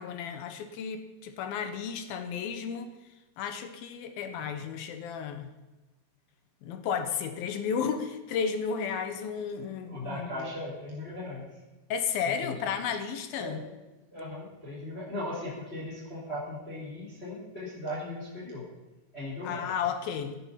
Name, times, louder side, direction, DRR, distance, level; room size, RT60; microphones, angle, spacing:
voice 1, 0.0-3.0 3.4-5.5 6.6-10.3 11.9-13.6 19.4-20.4, left 7 dB, 70° left, 8 dB, 2.5 m, -33 dB
voice 2, 9.9-11.5 12.2-12.5 13.4-13.7 14.1-18.6 19.1-19.8, left 1 dB, 15° left, -4 dB, 3.4 m, -38 dB
17.0 x 10.0 x 5.7 m, 1.1 s
omnidirectional pair, 5.1 m